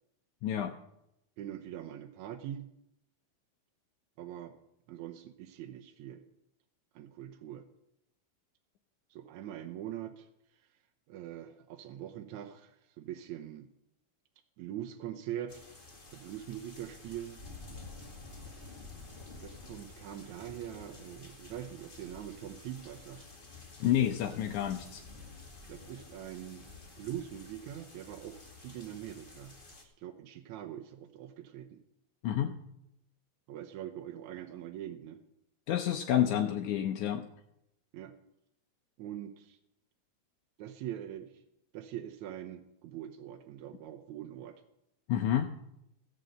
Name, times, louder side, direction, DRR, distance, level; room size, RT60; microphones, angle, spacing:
voice 1, 0.4-0.7 23.8-25.0 32.2-32.5 35.7-37.2 45.1-45.5, left 10 dB, 75° left, 4 dB, 1.8 m, -29 dB
voice 2, 1.4-2.7 4.2-4.5 4.9-6.2 6.9-7.7 9.1-10.3 11.1-13.7 14.6-15.6 16.1-17.4 19.4-23.3 25.7-26.7 27.0-29.5 29.8-31.8 33.5-35.2 37.9-38.1 39.0-39.6 40.6-41.4 41.7-44.6, right 11 dB, 75° right, 6 dB, 1.8 m, -43 dB
sound 1, 15.5-29.8, left 3 dB, 30° left, 1.0 m, -51 dB
15.0 x 6.5 x 7.9 m, 0.82 s
omnidirectional pair, 4.2 m